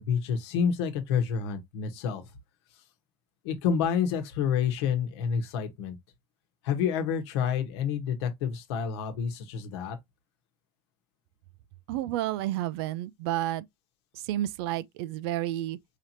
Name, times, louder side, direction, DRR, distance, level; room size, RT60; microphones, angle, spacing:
voice 1, 0.0-2.2 3.4-6.0 6.6-10.0, left 7 dB, 70° left, 1.2 m, -28 dB
voice 2, 11.9-13.6 14.1-15.8, right 14 dB, 60° right, 0.4 m, -31 dB
4.9 x 2.8 x 2.9 m
supercardioid pair, 170°, 15 cm